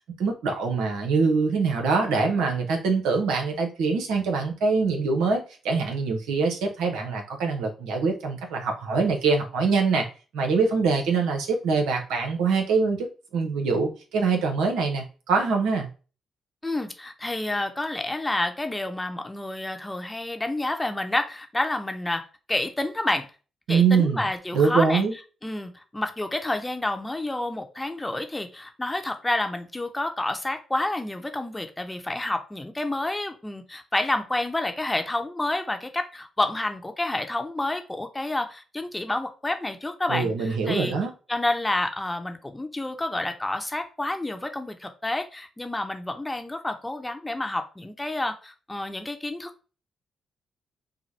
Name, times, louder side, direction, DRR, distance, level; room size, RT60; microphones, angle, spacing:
voice 1, 0.2-10.1 10.3-13.1 13.3-15.9 23.7-24.2 24.5-25.1 40.1-41.1, right 4 dB, 80° right, 3 dB, 1.0 m, -24 dB
voice 2, 16.6-22.2 22.5-23.3 23.7-25.0 25.4-40.9 41.3-49.7, left 2 dB, 20° left, 6 dB, 0.9 m, -29 dB
5.8 x 2.2 x 3.3 m, 0.34 s
hypercardioid pair, 50°, 0 cm